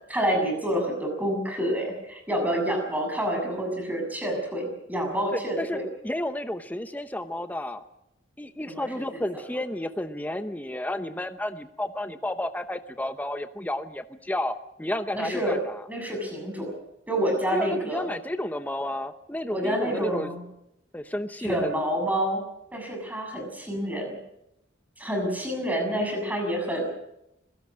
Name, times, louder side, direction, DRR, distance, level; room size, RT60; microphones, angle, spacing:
voice 1, 0.1-5.9 8.7-8.9 15.1-15.6 15.9-16.7 17.1-18.1 19.5-20.4 21.4-22.4 22.7-24.2 25.0-26.9, right 1 dB, 10° right, 3 dB, 7.2 m, -28 dB
voice 2, 5.3-7.8 8.4-15.8 17.5-20.3 20.9-21.8, left 1 dB, 10° left, 9 dB, 0.8 m, -32 dB
25.5 x 17.5 x 6.3 m, 0.82 s
head